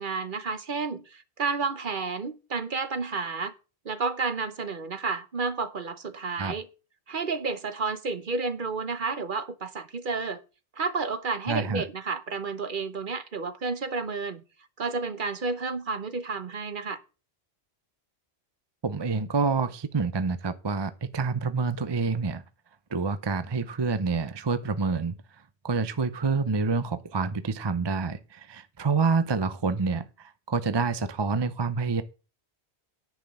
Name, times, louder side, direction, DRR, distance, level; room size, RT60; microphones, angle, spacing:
voice 1, 0.0-3.5 3.8-6.7 7.1-10.4 10.8-14.4 14.8-17.0, right 4 dB, 50° right, 1.1 m, -31 dB
voice 2, 11.5-11.8 18.8-22.4 22.9-25.1 25.6-32.0, right 4 dB, 30° right, 0.6 m, -27 dB
10.0 x 5.9 x 7.5 m
omnidirectional pair, 1.1 m